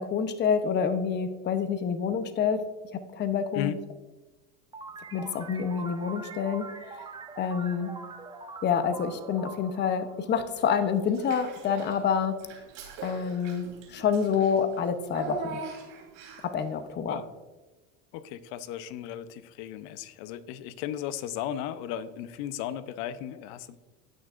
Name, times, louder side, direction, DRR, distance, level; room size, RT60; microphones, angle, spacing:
voice 1, 0.0-2.6 3.1-3.7 5.1-7.0 7.4-7.9 8.6-12.3 13.0-15.6 16.5-17.2, left 7 dB, 30° left, 9 dB, 0.7 m, -27 dB
sound 1, 4.7-11.0, right 4 dB, 15° right, 0.9 m, -43 dB
Child speech kid speaking / Bathtub (filling or washing), 11.1-12.0 12.4-16.6, right 4 dB, 75° right, 3.1 m, -41 dB
voice 2, 18.1-23.8, left 10 dB, 65° left, 14 dB, 0.7 m, -35 dB
15.5 x 6.4 x 2.5 m, 1.2 s
supercardioid pair, 110°, 38 cm